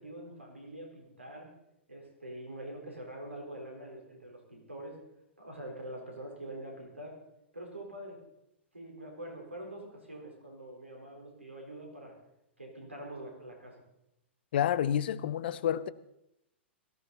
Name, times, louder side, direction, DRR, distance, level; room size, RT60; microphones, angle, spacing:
voice 1, 0.0-1.5 1.9-5.0 5.4-7.2 7.5-8.2 8.7-12.1 12.6-13.8, right 1 dB, 85° right, 4.2 m, -45 dB
voice 2, 14.5-15.9, left 10 dB, 55° left, 0.7 m, -29 dB
18.0 x 15.0 x 4.1 m
figure-of-eight pair, 105°, 6 cm